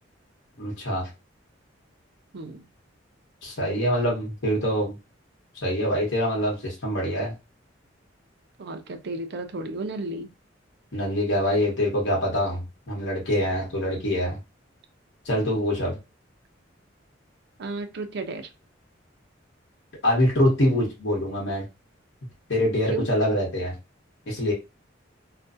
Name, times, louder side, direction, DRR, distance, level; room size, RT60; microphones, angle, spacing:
voice 1, 0.6-1.1 3.4-4.9 5.6-7.3 10.9-14.4 15.2-16.0 20.0-21.7 22.5-23.7 24.3-24.5, equal, 65° left, -2 dB, 1.1 m, -24 dB
voice 2, 2.3-2.7 8.6-10.3 17.6-18.5 22.9-23.0, right 2 dB, 60° right, 7 dB, 0.5 m, -33 dB
2.5 x 2.2 x 2.5 m, 0.26 s
head